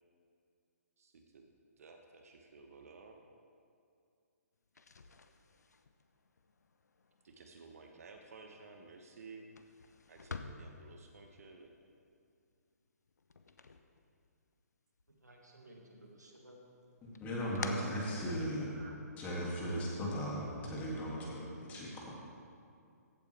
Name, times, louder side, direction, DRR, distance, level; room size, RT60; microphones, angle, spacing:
voice 1, 1.0-1.5 1.8-3.2 7.2-9.4 10.1-11.7, right 4 dB, 60° right, 3 dB, 1.0 m, -54 dB
sound 1, 4.6-14.6 15.0-15.8 16.2-18.8, left 4 dB, 75° left, 0.7 m, -51 dB
voice 2, 15.2-16.6 17.7-19.0, right 1 dB, 90° right, 0 dB, 1.8 m, -54 dB
voice 3, 17.0-18.7 19.2-22.1, equal, 15° left, -4 dB, 2.3 m, -37 dB
15.0 x 8.3 x 3.3 m, 2.4 s
figure-of-eight pair, 135°, 9 cm